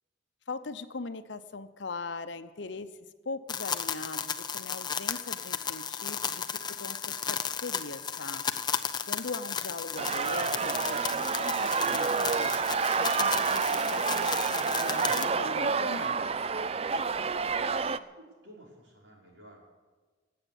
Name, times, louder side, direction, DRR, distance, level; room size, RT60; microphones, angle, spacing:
voice 1, 0.5-2.9 3.2-8.5 9.1-12.6 12.9-16.3, left 3 dB, 70° left, 11 dB, 0.8 m, -40 dB
sound 1, 3.5-15.3, left 7 dB, 25° left, 0.6 m, -34 dB
sound 2, 10.0-18.0, right 5 dB, 30° right, 0.4 m, -29 dB
voice 2, 17.7-19.6, right 1 dB, 75° right, -3 dB, 5.6 m, -55 dB
16.0 x 8.7 x 9.9 m, 1.4 s
head